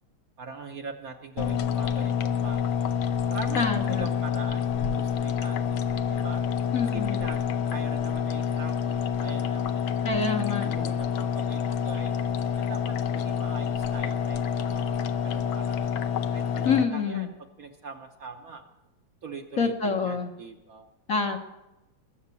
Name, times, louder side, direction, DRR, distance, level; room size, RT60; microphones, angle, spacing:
voice 1, 0.4-2.9 3.3-6.4 6.9-9.8 10.8-12.1 12.6-16.0 16.3-17.3 17.6-18.7 19.2-20.8, right 4 dB, 55° right, 4 dB, 1.2 m, -42 dB
sound 1, 1.4-16.8, left 8 dB, 85° left, 1.6 m, -28 dB
voice 2, 3.6-4.1 6.7-7.2 10.0-10.9 16.6-17.3 19.6-20.3 21.1-21.4, left 5 dB, 50° left, 4 dB, 1.3 m, -27 dB
20.0 x 7.2 x 8.3 m, 0.95 s
omnidirectional pair, 2.2 m